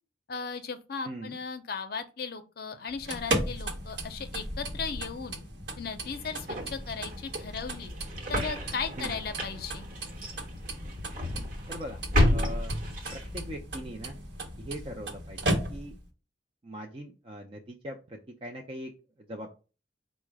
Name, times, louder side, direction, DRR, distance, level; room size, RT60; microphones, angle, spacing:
voice 1, 0.3-5.4 5.8-7.9 8.3-9.9, left 5 dB, 55° left, 8 dB, 0.5 m, -36 dB
voice 2, 1.0-1.4 9.0-9.2 11.7-12.0 12.3-12.7 13.1-14.2 14.6-15.9 16.6-18.9 19.2-19.5, equal, 30° right, 1 dB, 0.5 m, -41 dB
sound 1, 2.9-16.1, right 1 dB, 70° right, 0.9 m, -36 dB
sound 2, 6.1-13.5, left 1 dB, 50° right, 1.0 m, -32 dB
4.7 x 2.1 x 4.6 m, 0.33 s
head